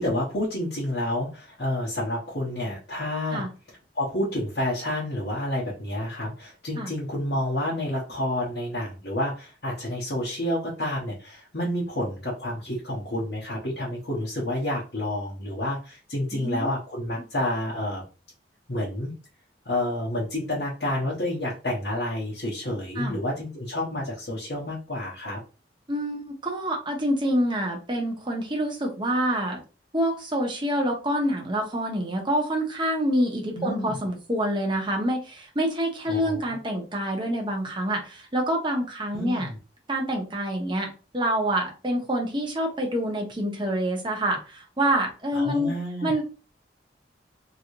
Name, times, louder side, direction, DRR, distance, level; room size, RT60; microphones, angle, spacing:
voice 1, 0.0-3.4 3.9-18.0 18.7-19.1 19.6-25.4 33.5-34.0 36.1-36.6 39.1-39.5 45.3-46.2, left 1 dB, 65° left, -7 dB, 1.1 m, -29 dB
voice 2, 16.3-16.7 22.9-23.2 25.9-29.6 29.9-39.5 39.9-45.7 46.0-46.2, right 1 dB, 25° right, 0 dB, 0.9 m, -27 dB
3.1 x 3.0 x 2.7 m, 0.33 s
head